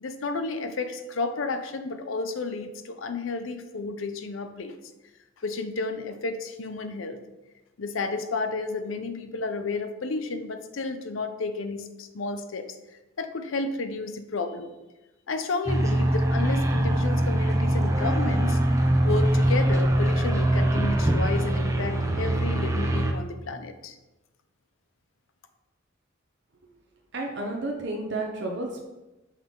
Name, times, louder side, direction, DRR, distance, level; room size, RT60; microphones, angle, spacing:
voice 1, 0.0-4.7 5.4-7.2 7.8-12.7 13.2-14.7 15.3-18.6 19.0-24.0, left 3 dB, 75° left, 9 dB, 0.6 m, -32 dB
sound 1, 15.7-23.1, right 1 dB, 15° right, 0.6 m, -23 dB
voice 2, 27.1-28.8, right 2 dB, 55° right, 0 dB, 0.8 m, -31 dB
5.7 x 5.5 x 3.7 m, 1.1 s
head